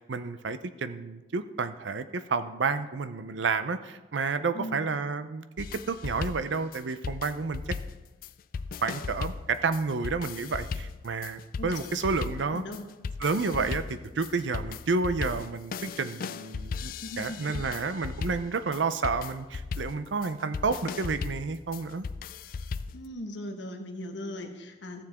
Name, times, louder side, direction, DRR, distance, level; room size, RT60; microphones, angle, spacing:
voice 1, 0.1-7.6 8.8-12.6 13.2-22.1, right 4 dB, 85° right, 11 dB, 0.6 m, -30 dB
voice 2, 4.5-4.9 11.6-12.0 12.5-12.9 17.0-17.6 22.9-25.0, left 1 dB, 80° left, 4 dB, 1.3 m, -39 dB
sound 1, 5.6-23.1, left 5 dB, 50° left, 0.3 m, -37 dB
14.5 x 7.2 x 3.6 m, 1.1 s
head